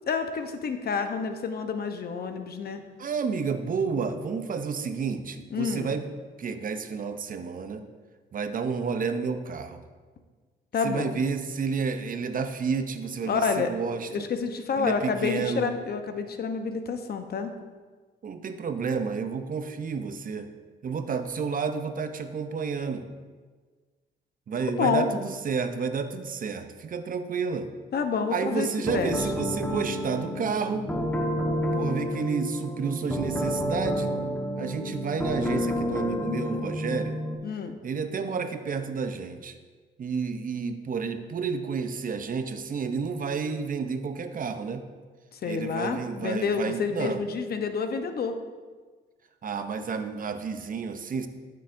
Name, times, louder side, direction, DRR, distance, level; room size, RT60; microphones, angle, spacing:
voice 1, 0.1-2.8 4.2-4.3 5.5-5.9 10.7-11.1 13.3-13.7 14.1-17.5 24.6-25.1 27.9-28.7 28.9-29.2 37.4-37.8 45.3-48.4, left 5 dB, 50° left, 7 dB, 0.8 m, -29 dB
voice 2, 3.0-6.1 6.4-7.8 8.3-9.8 10.8-14.3 14.8-15.7 18.2-20.5 20.8-23.1 24.5-27.7 28.3-30.9 31.5-34.1 34.6-37.2 37.8-39.5 40.0-44.8 45.5-47.2 49.4-51.3, right 5 dB, 45° right, 8 dB, 0.7 m, -30 dB
sound 1, 28.8-37.4, equal, 10° left, 1.2 m, -30 dB
13.0 x 6.7 x 2.6 m, 1.4 s
cardioid pair, 90°, 20 cm